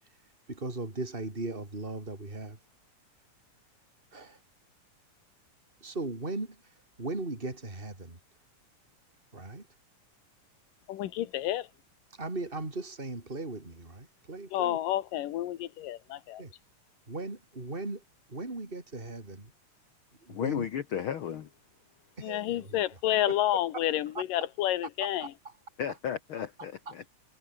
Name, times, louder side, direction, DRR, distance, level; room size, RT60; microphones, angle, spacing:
voice 1, 0.5-2.6 4.1-4.4 5.8-6.6 7.0-8.2 9.3-9.7 12.2-14.8 16.4-16.5 17.1-18.0 18.3-19.5 20.2-20.7 22.2-22.8 24.1-24.2 25.2-25.3 26.9-27.1, right 2 dB, 15° right, 4.6 m, -38 dB
voice 2, 10.9-11.7 14.5-16.4 22.2-25.3, left 13 dB, 80° left, 2.9 m, -30 dB
voice 3, 20.3-21.5 25.8-27.1, left 9 dB, 65° left, 1.3 m, -34 dB
omnidirectional pair, 3.8 m